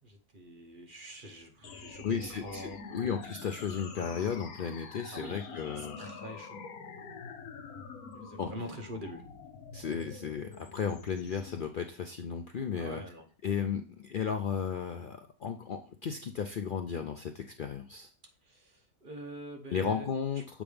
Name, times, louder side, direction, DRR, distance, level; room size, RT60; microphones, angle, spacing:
voice 1, 0.0-3.2 5.1-6.6 7.0-7.1 8.1-9.2 12.7-13.2 13.5-13.7 18.4-20.1, equal, 35° right, 3 dB, 1.2 m, -45 dB
sound 1, 1.6-11.6, left 5 dB, 70° left, 1.3 m, -46 dB
voice 2, 2.0-6.0 8.4-8.5 9.7-13.0 13.4-18.1 19.7-20.6, left 7 dB, 90° left, 5 dB, 0.4 m, -34 dB
7.2 x 5.1 x 3.4 m, 0.36 s
omnidirectional pair, 1.6 m